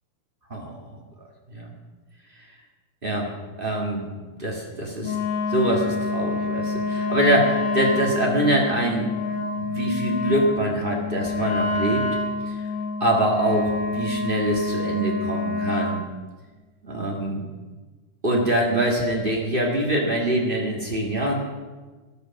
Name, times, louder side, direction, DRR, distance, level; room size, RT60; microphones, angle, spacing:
voice 1, 0.5-0.8 1.5-1.7 3.0-3.3 3.6-4.0 4.4-5.2 5.5-9.1 9.6-12.0 12.5-12.6 13.0-16.0 16.8-17.4 18.2-21.3, right 1 dB, 45° right, -2 dB, 0.6 m, -24 dB
Wind instrument woodwind instrument, 5.0-16.0, left 3 dB, 60° left, 2.7 m, -27 dB
15.0 x 11.0 x 5.9 m, 1.3 s
omnidirectional pair, 4.4 m